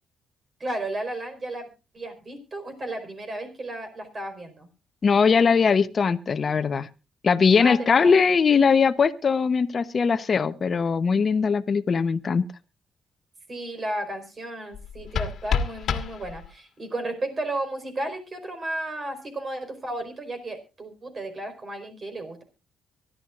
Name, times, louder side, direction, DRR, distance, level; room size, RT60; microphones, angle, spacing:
voice 1, 0.6-1.7 1.9-4.7 7.6-8.2 13.5-22.4, right 1 dB, 35° right, 8 dB, 4.6 m, -33 dB
voice 2, 5.0-6.9 7.2-12.4, left 5 dB, 40° left, 10 dB, 0.9 m, -20 dB
sound 1, 14.7-16.7, left 7 dB, 65° left, 1.6 m, -29 dB
24.0 x 11.5 x 2.5 m, 0.29 s
cardioid pair, 90°, 0 cm